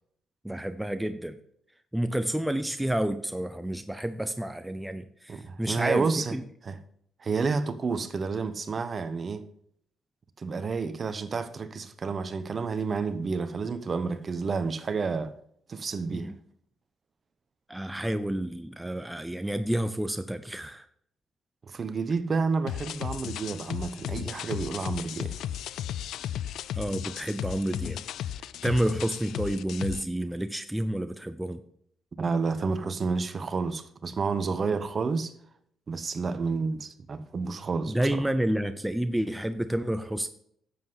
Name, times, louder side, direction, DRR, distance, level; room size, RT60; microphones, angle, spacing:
voice 1, 0.4-1.4 1.9-6.4 16.1-16.3 17.7-20.9 26.8-28.0 28.6-31.6 37.9-40.3, right 1 dB, 5° right, 0.6 m, -30 dB
voice 2, 5.3-6.4 6.6-6.8 7.2-9.4 10.4-15.3 15.7-16.3 21.7-25.3 32.2-35.3 35.9-38.3, right 4 dB, 40° right, 0.9 m, -30 dB
sound 1, 22.7-30.0, left 11 dB, 80° left, 0.3 m, -35 dB
10.5 x 7.8 x 4.0 m
cardioid pair, 90°, 0 cm